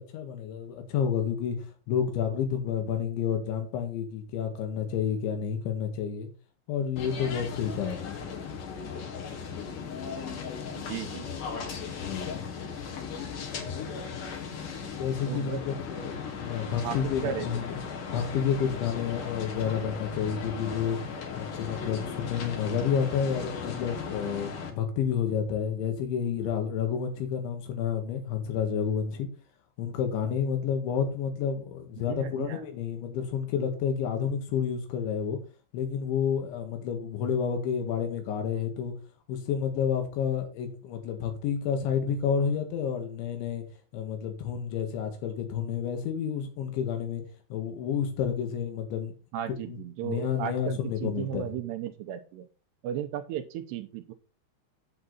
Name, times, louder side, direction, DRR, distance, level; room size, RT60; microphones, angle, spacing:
voice 1, 0.0-6.3 6.7-8.2 11.9-12.4 13.5-14.0 14.9-17.8 18.1-21.0 21.4-29.3 29.8-35.4 35.7-38.9 39.3-43.7 43.9-47.2 47.5-49.1 49.6-51.5, left 7 dB, 85° left, 5 dB, 4.1 m, -30 dB
sound 1, 7.0-24.7, left 6 dB, 55° left, 2.8 m, -37 dB
voice 2, 10.9-11.2 15.3-15.7 16.8-17.0 17.2-17.5 32.1-32.6 49.3-52.5 52.8-54.1, right 10 dB, 80° right, 8 dB, 2.7 m, -35 dB
8.7 x 8.0 x 4.1 m, 0.36 s
omnidirectional pair, 5.2 m